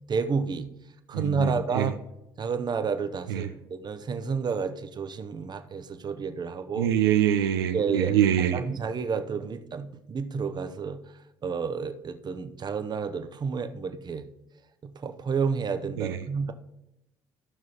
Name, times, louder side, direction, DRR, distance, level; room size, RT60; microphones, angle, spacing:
voice 1, 0.1-0.7 1.1-2.0 2.4-6.9 7.7-8.2 8.5-11.0 11.4-14.3 14.9-16.5, right 5 dB, 35° right, 9 dB, 0.8 m, -30 dB
voice 2, 1.1-1.9 3.3-3.5 6.8-8.6 16.0-16.2, right 10 dB, 75° right, 7 dB, 0.4 m, -25 dB
14.5 x 6.0 x 2.9 m, 0.87 s
figure-of-eight pair, 55°, 13 cm